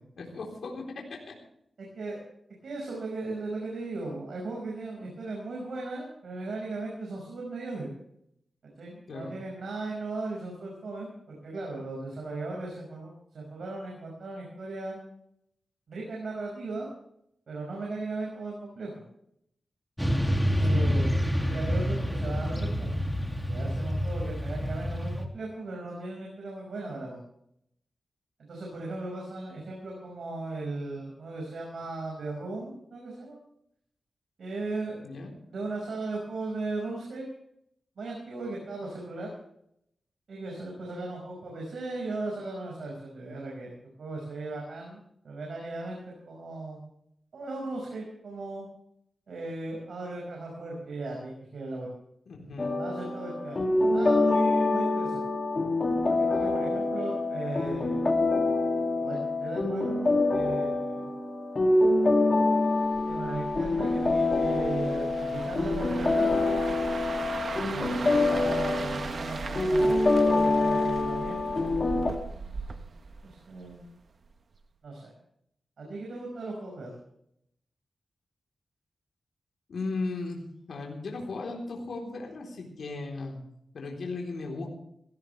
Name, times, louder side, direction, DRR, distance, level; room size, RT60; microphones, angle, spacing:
voice 1, 0.2-1.4 9.1-9.3 20.7-20.9 35.0-35.3 52.3-52.8 68.0-68.5 75.8-76.0 79.7-80.4 80.7-83.4 83.7-84.7, left 3 dB, 80° left, 0 dB, 3.8 m, -37 dB
voice 2, 1.8-2.2 2.6-7.9 8.6-15.0 15.9-16.9 17.5-18.9 20.6-21.1 21.4-23.0 23.5-27.2 28.5-33.4 34.4-35.0 35.5-37.3 38.0-39.3 40.3-43.7 44.0-46.0 46.3-46.8 47.3-48.7 49.3-51.9 52.8-53.6 53.9-55.2 56.3-58.3 59.0-61.1 63.1-66.6 67.7-71.9 73.2-73.8 74.8-75.1 75.8-77.0, right 2 dB, 80° right, -1 dB, 5.5 m, -37 dB
Motorcycle / Traffic noise roadway noise, 20.0-25.3, equal, ahead, 2.7 m, -27 dB
sound 1, 52.6-72.1, left 2 dB, 40° left, 2.5 m, -26 dB
sound 2, 62.8-73.9 74.3-74.5, right 4 dB, 60° right, 1.1 m, -38 dB
17.5 x 17.0 x 3.4 m, 0.75 s
cardioid pair, 75°, 0 cm